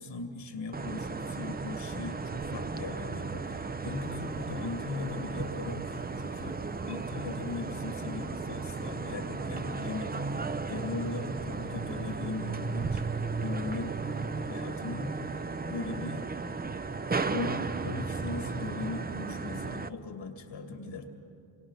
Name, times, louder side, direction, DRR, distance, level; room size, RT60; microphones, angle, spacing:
voice 1, 0.0-6.6 6.9-13.0 13.4-14.0 14.4-15.2 15.7-16.3 17.3-21.1, left 3 dB, 80° left, 4 dB, 2.6 m, -39 dB
sound 1, 0.7-19.9, right 4 dB, 20° right, 0.6 m, -35 dB
sound 2, 3.8-14.4, right 3 dB, 55° right, 2.9 m, -41 dB
27.5 x 22.5 x 5.8 m, 2.7 s
cardioid pair, 65°, 45 cm